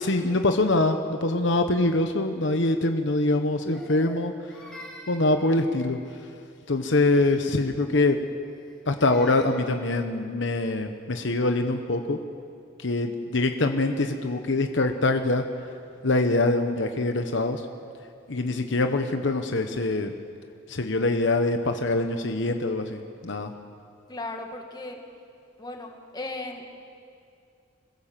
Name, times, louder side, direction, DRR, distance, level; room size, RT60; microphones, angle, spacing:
voice 1, 0.0-4.3 5.1-6.0 6.7-8.2 8.9-12.2 12.8-15.4 16.0-17.6 18.3-20.1 20.7-23.5, left 2 dB, 65° left, 6 dB, 1.1 m, -24 dB
Crying sobbing, 3.7-6.2 8.5-9.9, left 1 dB, 5° left, 3.2 m, -47 dB
voice 2, 24.1-25.0 25.6-26.6, left 2 dB, 20° left, 3 dB, 2.0 m, -36 dB
25.5 x 16.0 x 7.5 m, 2.4 s
head